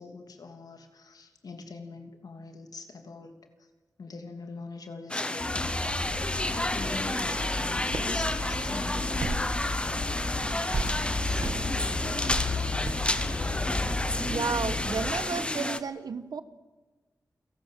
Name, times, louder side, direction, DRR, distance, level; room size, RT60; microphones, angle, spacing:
voice 1, 0.0-3.4 4.0-6.0 6.5-11.4 11.8-12.2, left 3 dB, 80° left, 5 dB, 3.0 m, -44 dB
sound 1, 5.1-15.8, left 1 dB, 15° left, 1.1 m, -31 dB
Traffic noise roadway noise, 5.4-15.2, left 3 dB, 65° left, 4.3 m, -33 dB
sound 2, 6.0-9.8 10.1-10.2 10.7-10.9 11.4-11.6 12.3-12.4 12.8-12.9, right 4 dB, 60° right, 2.1 m, -36 dB
voice 2, 14.2-16.4, right 5 dB, 80° right, 12 dB, 1.4 m, -32 dB
29.0 x 18.0 x 7.7 m, 1.2 s
wide cardioid pair, 110°, 6 cm